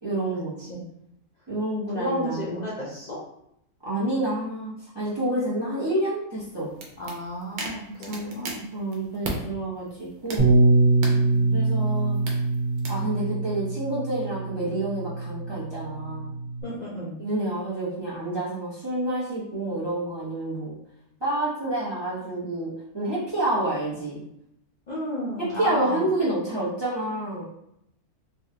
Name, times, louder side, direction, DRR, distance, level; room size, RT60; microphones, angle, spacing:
voice 1, 0.0-0.6 1.5-2.5 3.8-6.7 8.0-8.3 8.7-10.6 11.5-12.2 12.9-16.3 17.2-20.7 21.2-24.2 25.4-27.4, right 1 dB, 25° right, -8 dB, 0.6 m, -28 dB
voice 2, 1.9-3.2 7.0-8.6 11.0-11.6 16.6-17.1 24.9-26.0, equal, 80° left, -6 dB, 0.4 m, -32 dB
sound 1, 6.4-9.4 9.9-13.0, right 2 dB, 80° right, 1.2 m, -39 dB
Bass guitar, 10.4-16.6, right 2 dB, 40° right, 1.4 m, -24 dB
3.5 x 2.3 x 2.7 m, 0.78 s
omnidirectional pair, 1.6 m